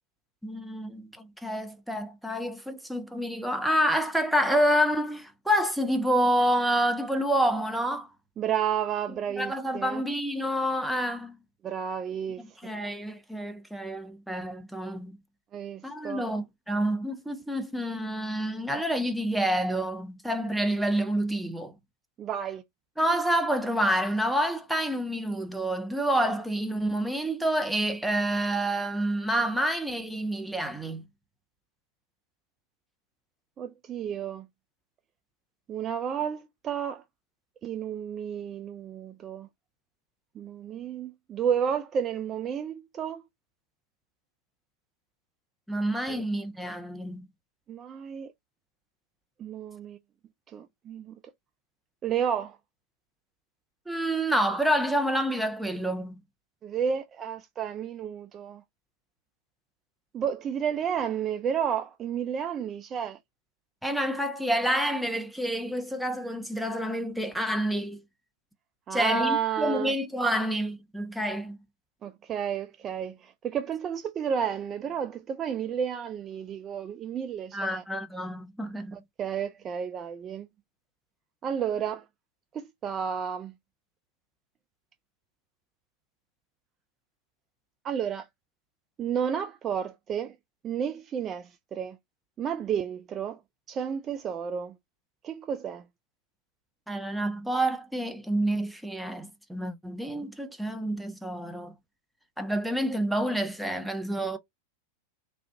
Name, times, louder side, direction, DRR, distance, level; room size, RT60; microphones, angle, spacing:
voice 1, 0.4-8.1 9.4-11.4 12.6-15.2 15.8-21.7 23.0-31.1 45.7-47.3 53.9-56.2 63.8-68.0 68.9-71.6 77.5-79.0 96.9-101.7 102.4-104.4, equal, ahead, 0.7 m, -28 dB
voice 2, 8.4-10.0 11.6-12.6 15.5-16.2 22.2-22.6 33.6-34.5 35.7-37.0 37.6-39.5 40.4-43.2 46.1-46.2 47.7-48.3 49.4-50.0 50.5-51.2 52.0-52.6 56.6-58.6 60.1-63.2 68.9-69.9 72.0-77.8 78.9-80.5 81.4-82.0 82.5-83.5 87.8-88.3 89.0-90.3 90.6-92.0 92.4-93.4 93.7-94.8 95.2-95.8, right 8 dB, 25° right, 0.3 m, -31 dB
3.3 x 2.5 x 2.6 m
figure-of-eight pair, 90°, 0 cm